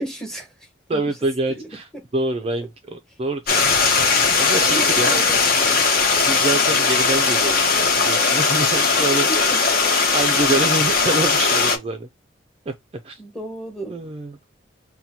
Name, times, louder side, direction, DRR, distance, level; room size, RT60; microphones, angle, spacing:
voice 1, 0.0-1.1 1.5-1.7 4.5-5.9 9.3-10.0 13.2-14.0, right 1 dB, 5° left, 0.9 m, -33 dB
voice 2, 0.9-5.2 6.3-9.3 10.1-12.1 12.7-12.8 13.0-13.2 13.9-14.4, right 2 dB, 30° right, 0.3 m, -26 dB
Stream, 3.5-11.8, left 4 dB, 50° left, 0.8 m, -18 dB
5.7 x 2.2 x 2.7 m
head